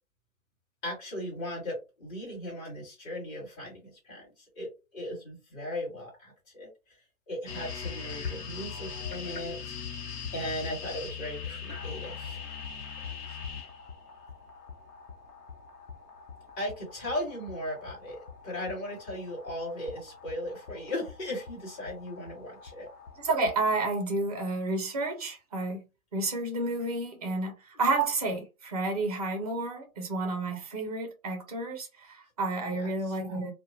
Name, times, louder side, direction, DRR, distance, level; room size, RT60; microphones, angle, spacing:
voice 1, 0.8-6.7 7.3-9.7 10.3-12.6 13.0-13.4 16.6-22.9 32.8-32.9, left 1 dB, 25° left, 1.6 m, -37 dB
sound 1, 7.5-23.6, left 6 dB, 90° left, 0.9 m, -42 dB
voice 2, 23.2-25.9 26.1-27.5 27.8-33.5, right 2 dB, 25° right, 0.5 m, -30 dB
2.7 x 2.2 x 2.5 m
hypercardioid pair, 145°, 45 cm